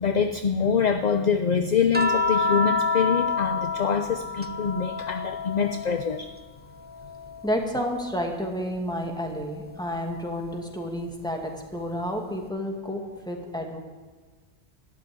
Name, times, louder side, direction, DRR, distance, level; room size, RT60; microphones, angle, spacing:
voice 1, 0.0-6.3, left 6 dB, 45° left, 8 dB, 0.7 m, -25 dB
sound 1, 1.9-6.4 6.8-8.4 9.9-10.1, left 3 dB, 15° right, 0.5 m, -29 dB
voice 2, 7.4-13.8, equal, 5° left, 1 dB, 2.4 m, -30 dB
12.5 x 12.5 x 8.7 m, 1.4 s
omnidirectional pair, 1.2 m